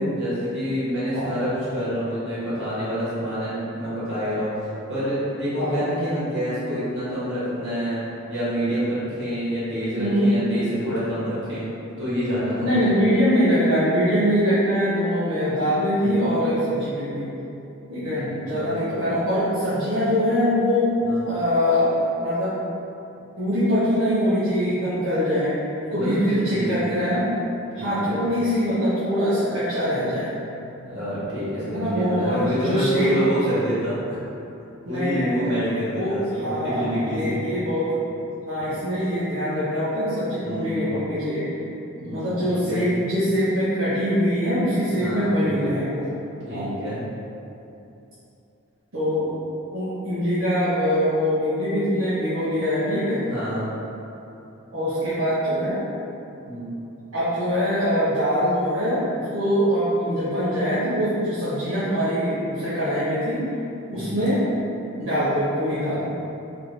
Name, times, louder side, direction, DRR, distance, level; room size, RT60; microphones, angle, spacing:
voice 1, 0.0-11.7 12.0-12.9 16.0-16.3 18.0-18.7 21.1-21.2 26.0-26.7 27.8-28.2 30.0-30.1 30.8-34.2 34.6-37.4 40.4-40.7 41.9-42.8 44.9-45.3 46.4-47.0 53.2-53.7 56.4-56.7 63.9-64.2, equal, 55° right, -11 dB, 1.5 m, -28 dB
voice 2, 5.6-5.9 10.0-10.4 12.6-17.3 17.9-20.9 21.2-21.9 22.2-22.6 23.4-27.3 27.7-30.3 31.7-33.3 34.9-37.9 38.5-41.4 42.1-46.0 46.5-46.8 48.9-49.3 49.7-53.2 54.7-55.8 57.1-63.4 63.9-64.4 65.0-66.1, equal, 75° right, -13 dB, 0.9 m, -23 dB
3.5 x 2.3 x 3.2 m, 2.8 s
head